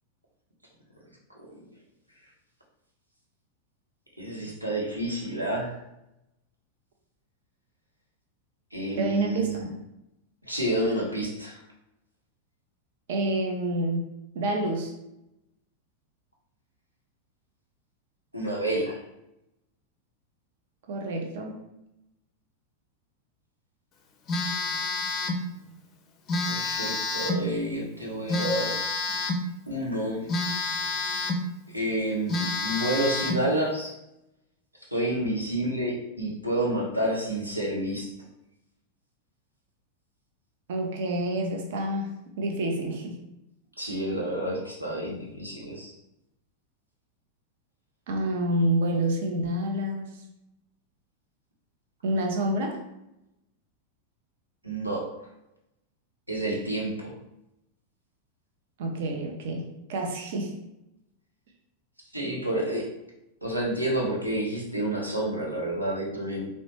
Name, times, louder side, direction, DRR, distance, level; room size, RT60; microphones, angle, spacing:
voice 1, 4.2-5.8 8.7-9.7 10.5-11.6 18.3-19.0 26.4-28.7 29.7-30.2 31.7-34.0 34.9-38.1 43.8-45.9 54.6-55.1 56.3-57.1 62.1-62.9 63.4-66.5, right 1 dB, 85° right, -2 dB, 0.8 m, -29 dB
voice 2, 9.0-9.6 13.1-14.0 14.3-14.9 20.9-21.5 40.7-43.2 48.1-50.2 52.0-52.8 58.8-60.5, right 1 dB, 55° right, 2 dB, 0.6 m, -28 dB
Telephone, 24.3-25.5 26.3-27.5 28.3-29.5 30.3-31.5 31.9-32.0 32.3-33.5, left 2 dB, 30° left, 0.4 m, -29 dB
3.9 x 2.1 x 3.1 m, 0.86 s
figure-of-eight pair, 90°, 0 cm